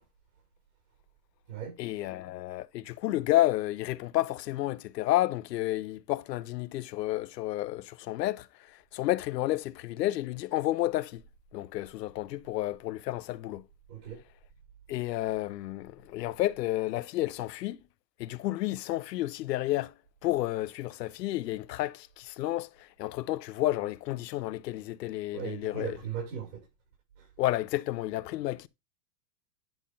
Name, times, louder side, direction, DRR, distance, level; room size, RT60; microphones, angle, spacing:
voice 1, 1.8-11.2 11.5-13.6 14.9-17.8 18.2-19.9 20.2-26.0 27.4-28.7, left 16 dB, 75° left, 0.8 m, -31 dB
voice 2, 13.9-14.2 25.3-26.6 27.2-27.3, right 8 dB, 60° right, 5.7 m, -38 dB
10.5 x 3.6 x 5.3 m
supercardioid pair, 155°, 49 cm